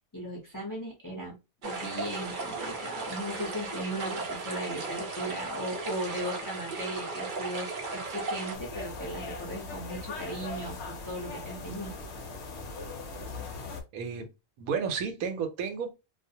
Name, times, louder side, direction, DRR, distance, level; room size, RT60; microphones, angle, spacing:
voice 1, 0.1-1.4 1.6-11.9, right 1 dB, 25° left, 0.5 m, -37 dB
sound 1, 1.6-8.6, right 3 dB, 55° right, 0.6 m, -36 dB
sound 2, 8.5-13.8, left 3 dB, 60° left, 0.8 m, -40 dB
voice 2, 13.9-14.3 14.6-15.9, right 6 dB, 80° right, 1.0 m, -32 dB
2.4 x 2.0 x 2.7 m
omnidirectional pair, 1.5 m